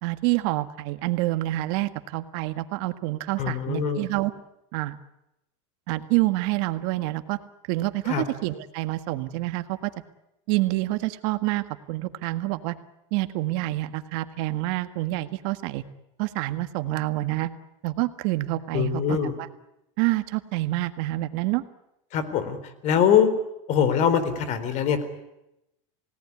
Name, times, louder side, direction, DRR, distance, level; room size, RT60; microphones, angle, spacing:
voice 1, 0.0-4.3 4.7-5.0 5.9-7.4 7.7-9.9 10.5-12.8 13.1-15.8 16.2-17.5 17.8-19.5 20.0-21.6, right 18 dB, 65° right, 10 dB, 1.6 m, -27 dB
voice 2, 3.4-4.1 8.1-8.2 18.7-19.3 22.1-22.6 22.8-23.3 23.7-25.0, left 8 dB, 50° left, 12 dB, 4.0 m, -22 dB
29.0 x 18.0 x 9.8 m, 0.89 s
supercardioid pair, 125°, 16 cm